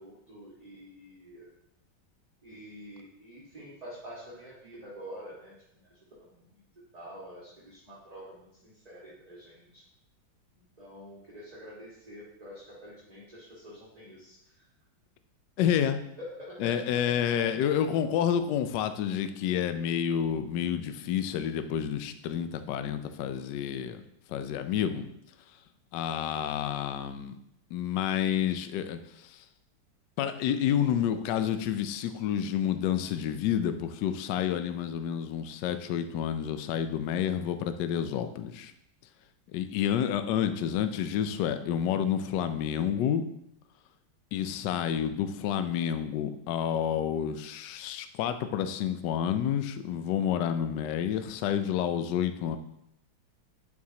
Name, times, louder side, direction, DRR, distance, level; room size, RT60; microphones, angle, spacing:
voice 1, 0.0-1.5 2.4-6.6 6.9-9.8 10.5-14.4 16.2-17.7, equal, 20° right, -7 dB, 1.6 m, -47 dB
voice 2, 15.6-16.0 16.6-24.0 24.3-25.1 25.9-27.4 27.7-29.4 30.2-38.7 39.5-43.2 44.3-52.6, left 9 dB, 75° left, 10 dB, 1.0 m, -29 dB
11.0 x 4.7 x 2.8 m, 0.78 s
omnidirectional pair, 2.2 m